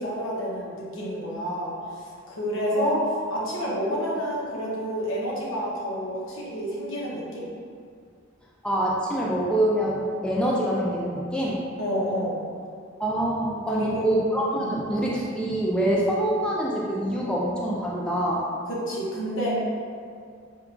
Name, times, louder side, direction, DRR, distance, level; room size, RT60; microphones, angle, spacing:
voice 1, 0.0-7.5 11.8-12.4 13.7-13.9 14.6-14.7 18.7-19.5, equal, 85° left, -6 dB, 0.9 m, -29 dB
voice 2, 8.6-11.7 13.0-18.5, right 1 dB, 5° left, -5 dB, 0.3 m, -25 dB
4.6 x 2.3 x 2.4 m, 2.3 s
head